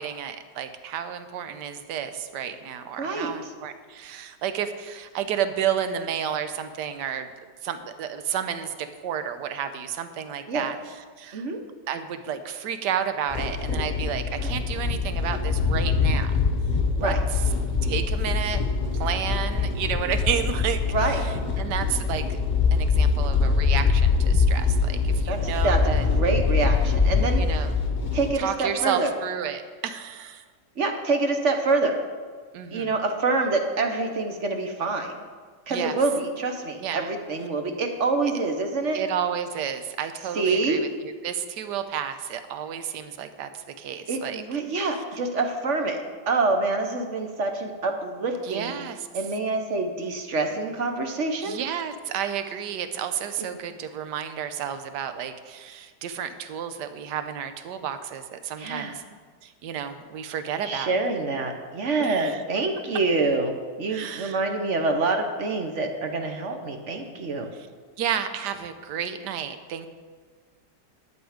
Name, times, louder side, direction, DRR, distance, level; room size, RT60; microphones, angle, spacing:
voice 1, 0.0-7.3 7.6-8.7 9.0-10.8 11.2-11.4 11.9-16.3 17.0-17.1 17.8-18.6 19.0-22.4 22.7-26.0 27.3-27.7 28.4-30.4 32.5-32.9 35.7-35.9 36.8-37.1 38.9-44.4 48.4-49.1 51.4-59.0 59.4-60.9 62.0-62.4 63.9-64.4 68.0-69.9, right 8 dB, 75° right, 9 dB, 1.3 m, -31 dB
voice 2, 3.0-3.5 10.5-10.7 11.3-11.6 14.4-14.5 17.0-17.2 20.8-21.2 25.3-27.7 28.1-29.1 30.8-32.0 32.7-35.2 35.7-39.0 40.3-40.8 44.1-46.0 46.3-48.7 49.1-51.6 58.6-59.0 60.6-67.5, right 3 dB, 45° right, 5 dB, 1.2 m, -26 dB
sound 1, 13.3-28.3, left 4 dB, 35° left, 0.8 m, -23 dB
11.0 x 8.9 x 5.0 m, 1.6 s
omnidirectional pair, 1.9 m